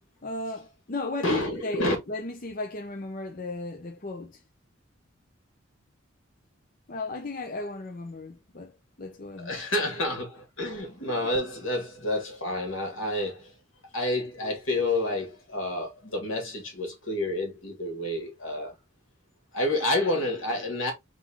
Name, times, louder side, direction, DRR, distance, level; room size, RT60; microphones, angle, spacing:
voice 1, 0.2-4.4 6.9-9.6, left 3 dB, 40° left, 0.6 m, -35 dB
voice 2, 1.2-2.0 9.4-13.5 13.9-18.8 19.5-20.9, left 1 dB, 75° left, 2.2 m, -29 dB
3.7 x 3.7 x 3.5 m
head